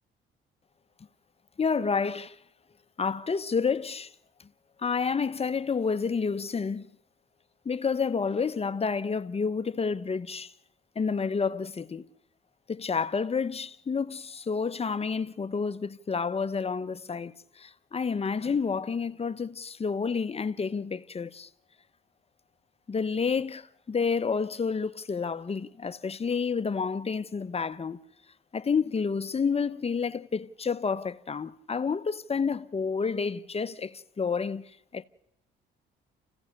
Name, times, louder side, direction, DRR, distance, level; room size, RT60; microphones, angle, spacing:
voice 1, 1.6-2.4 3.0-4.1 4.8-6.9 7.6-10.5 10.9-12.1 12.7-21.5 22.9-28.0 28.5-35.0, left 5 dB, 30° left, 1.0 m, -29 dB
28.5 x 16.0 x 6.7 m
cardioid pair, 90°, 20 cm